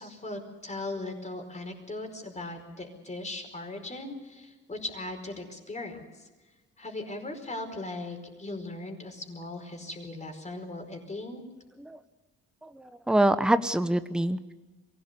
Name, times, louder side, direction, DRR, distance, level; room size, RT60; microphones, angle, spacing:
voice 1, 0.0-6.3 6.8-11.4, left 2 dB, 25° left, 4 dB, 5.0 m, -38 dB
voice 2, 12.6-14.5, right 1 dB, 5° right, 11 dB, 0.9 m, -25 dB
23.0 x 17.0 x 8.3 m, 1.2 s
cardioid pair, 90°, 30 cm